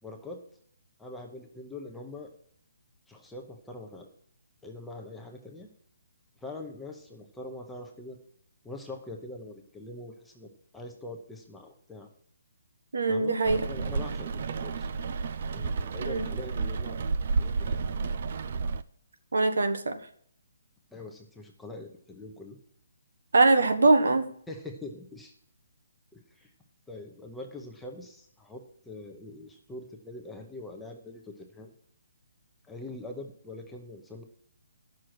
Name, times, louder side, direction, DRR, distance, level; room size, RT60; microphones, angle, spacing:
voice 1, 0.0-0.4 1.0-2.3 3.1-4.1 4.6-5.7 6.4-8.2 8.6-10.5 10.7-12.1 13.1-14.9 15.5-17.0 17.4-17.8 20.9-22.6 24.5-25.3 26.1-26.5 26.9-31.7 32.7-34.2, left 2 dB, 5° left, 1 dB, 0.8 m, -43 dB
voice 2, 12.9-13.6 16.0-16.2 19.3-20.0 23.3-24.3, right 3 dB, 85° right, 7 dB, 1.4 m, -22 dB
Rain, 13.4-18.8, right 4 dB, 40° right, 0.5 m, -31 dB
10.5 x 6.5 x 6.1 m, 0.63 s
hypercardioid pair, 175°, 0 cm